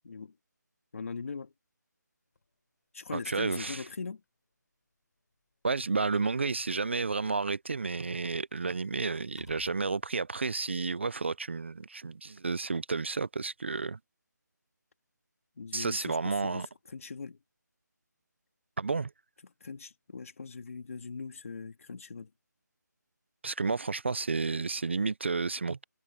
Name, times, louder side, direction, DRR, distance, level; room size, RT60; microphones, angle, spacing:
voice 1, 0.0-0.4 0.9-1.5 2.9-4.2 15.6-17.4 19.4-22.3, left 4 dB, 45° left, 2.2 m, -41 dB
sound 1, 2.3-2.5 3.6-3.7 4.1-4.2 5.2-7.2 7.5-11.0 11.4-11.5, left 3 dB, 65° left, 5.1 m, -60 dB
voice 2, 3.1-3.8 5.6-14.0 15.7-16.7 18.8-19.1 23.4-25.8, right 4 dB, 40° right, 0.4 m, -31 dB
figure-of-eight pair, 175°, 10 cm